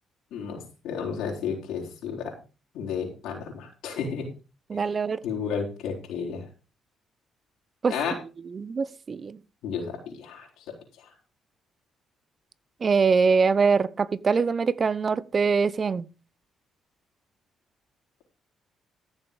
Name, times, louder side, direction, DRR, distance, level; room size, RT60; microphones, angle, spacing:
voice 1, 0.3-2.3 2.7-4.3 4.7-4.8 5.2-6.5 7.9-8.1 9.6-10.7 11.0-11.1, left 6 dB, 90° left, 4.5 m, -32 dB
voice 2, 4.7-5.2 7.8-7.9 8.5-9.4 12.8-16.1, right 5 dB, 40° right, 0.8 m, -23 dB
14.5 x 7.2 x 5.2 m
cardioid pair, 90°, 0 cm